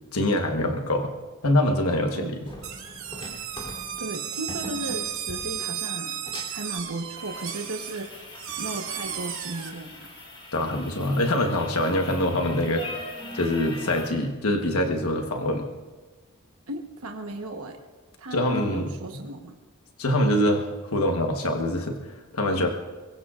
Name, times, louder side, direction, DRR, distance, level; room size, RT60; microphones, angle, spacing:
voice 1, 0.1-1.1 1.4-2.4 10.5-12.9 13.3-15.7 18.3-18.9 20.0-22.7, left 1 dB, 85° left, 3 dB, 1.3 m, -24 dB
sound 1, 2.3-14.1, left 1 dB, 25° left, 3.3 m, -41 dB
sound 2, 2.6-9.7, right 9 dB, 70° right, 2.2 m, -34 dB
voice 2, 4.0-6.2 6.5-8.1 8.6-10.1 16.7-17.8 18.2-19.6, right 2 dB, 85° right, 4 dB, 1.2 m, -35 dB
23.5 x 22.5 x 2.5 m, 1.3 s
head